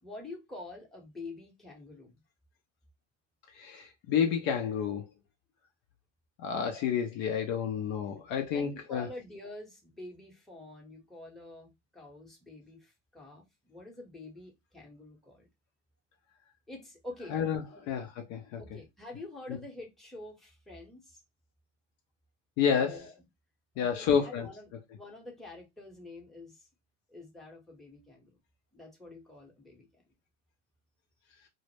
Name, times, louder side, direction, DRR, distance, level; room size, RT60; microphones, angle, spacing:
voice 1, 0.0-2.2 8.5-15.5 16.7-17.4 17.7-17.9 18.6-21.2 22.8-23.1 23.7-26.6 27.1-28.3 28.7-30.0, left 2 dB, ahead, 0.8 m, -47 dB
voice 2, 3.5-5.1 6.4-9.1 17.3-18.6 22.6-23.1 23.8-24.5, left 7 dB, 45° left, 0.5 m, -30 dB
2.0 x 2.0 x 3.0 m
hypercardioid pair, 100°, 38 cm